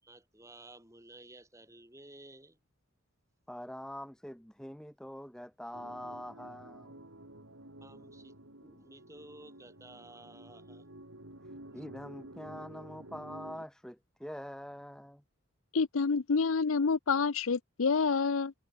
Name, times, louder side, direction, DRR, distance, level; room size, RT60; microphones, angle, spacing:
voice 1, 0.0-2.6 7.8-10.9 11.7-11.8, right 1 dB, 15° right, 7.0 m, -54 dB
voice 2, 3.5-7.0 11.7-15.2, equal, 5° left, 1.8 m, -44 dB
sound 1, 5.7-13.7, right 1 dB, 70° right, 4.9 m, -51 dB
voice 3, 15.7-18.5, left 5 dB, 70° left, 0.6 m, -28 dB
head